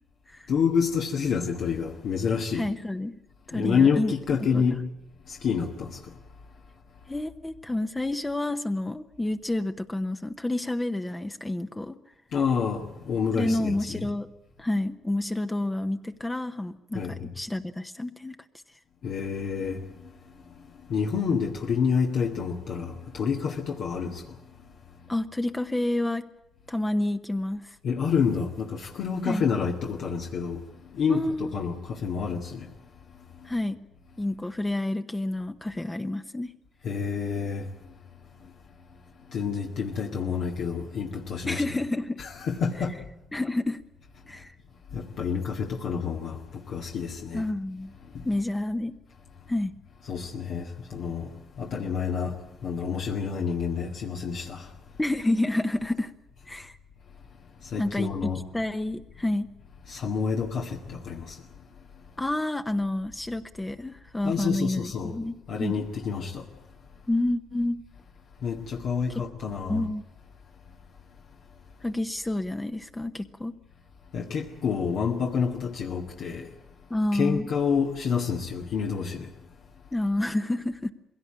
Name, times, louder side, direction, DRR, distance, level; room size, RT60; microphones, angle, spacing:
voice 1, 0.5-2.7 3.5-4.8 5.3-6.0 12.3-14.1 16.9-17.3 19.0-19.8 20.9-24.2 27.8-30.6 30.9-32.7 36.8-37.7 39.3-41.6 42.2-42.9 44.9-46.4 46.7-47.5 48.1-48.2 50.1-51.3 51.6-54.7 57.6-58.4 59.9-61.4 64.2-65.2 65.5-66.5 68.4-69.8 74.1-76.5 77.1-79.3, left 6 dB, 70° left, 1.9 m, -28 dB
voice 2, 2.5-3.2 3.5-4.1 4.4-4.8 7.1-12.0 13.3-14.3 14.6-18.4 25.1-26.3 26.7-27.8 29.3-29.5 31.1-31.6 33.4-33.8 34.2-36.5 41.5-42.2 43.3-43.8 44.3-44.6 47.3-47.9 48.2-48.9 49.5-49.8 55.0-56.1 56.5-56.8 57.8-59.5 62.2-65.7 67.1-67.8 69.7-70.1 71.8-73.5 76.9-77.5 79.9-80.9, left 1 dB, 15° left, 0.9 m, -29 dB
21.5 x 17.0 x 8.8 m
cardioid pair, 90°, 0 cm